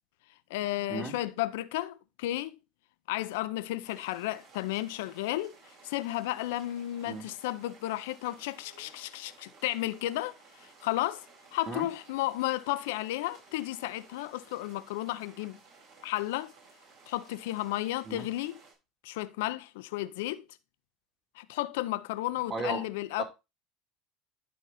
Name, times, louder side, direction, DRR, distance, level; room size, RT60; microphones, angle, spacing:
voice 1, 0.5-2.6 3.1-5.6 5.8-10.4 10.6-11.3 11.5-15.6 16.0-16.5 17.1-18.6 19.0-20.4 21.4-23.2, left 15 dB, 80° left, 0.7 m, -33 dB
sound 1, 3.8-18.7, right 4 dB, 60° right, 4.8 m, -57 dB
voice 2, 22.5-22.8 23.2-23.3, right 3 dB, 25° right, 2.8 m, -35 dB
12.0 x 4.0 x 4.2 m
supercardioid pair, 100°, 0 cm